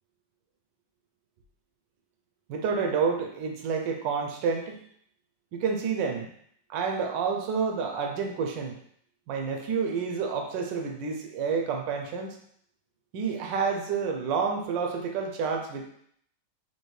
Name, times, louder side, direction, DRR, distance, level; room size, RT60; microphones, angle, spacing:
voice 1, 2.5-4.8 5.5-6.3 6.7-8.8 9.3-12.4 13.1-15.9, right 5 dB, 85° right, 3 dB, 1.3 m, -29 dB
4.4 x 2.8 x 3.1 m, 0.66 s
omnidirectional pair, 2.0 m